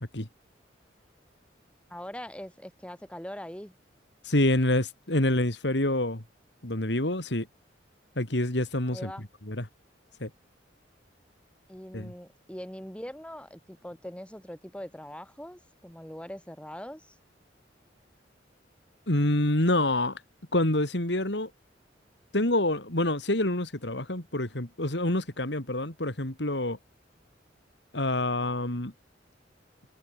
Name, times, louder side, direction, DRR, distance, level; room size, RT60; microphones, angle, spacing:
voice 1, 1.9-3.7 8.9-9.3 11.7-17.2, equal, 5° left, 6.2 m, -42 dB
voice 2, 4.2-6.2 6.6-7.5 8.2-9.1 9.5-9.6 10.2-10.3 11.9-12.1 19.1-20.2 20.5-21.5 22.3-26.8 27.9-28.9, left 1 dB, 65° left, 3.4 m, -27 dB
head